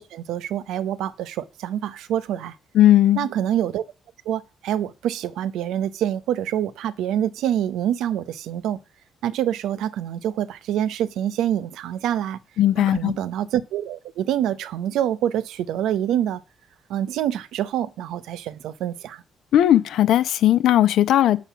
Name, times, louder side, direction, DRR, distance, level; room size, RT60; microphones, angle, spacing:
voice 1, 0.0-2.5 3.2-3.8 4.3-8.8 9.2-12.4 12.8-16.4 16.9-19.2, right 11 dB, 85° right, 0.8 m, -26 dB
voice 2, 2.7-3.3 12.6-13.2 19.5-21.4, left 12 dB, 80° left, 0.8 m, -17 dB
8.4 x 6.6 x 5.8 m
cardioid pair, 90°, 0 cm